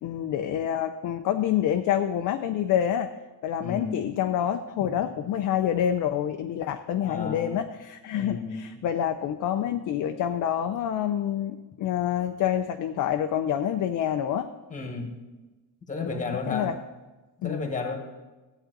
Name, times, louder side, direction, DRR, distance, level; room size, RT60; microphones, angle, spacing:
voice 1, 0.0-3.1 3.4-14.5 16.1-16.8 17.4-17.7, left 10 dB, 45° left, 7 dB, 0.5 m, -27 dB
voice 2, 3.6-4.1 4.8-4.9 7.0-7.7 8.1-8.7 14.7-15.2 15.9-16.7 17.4-18.0, left 4 dB, 15° left, 4 dB, 1.5 m, -33 dB
14.5 x 9.2 x 3.9 m, 1.2 s
cardioid pair, 160°, 45 cm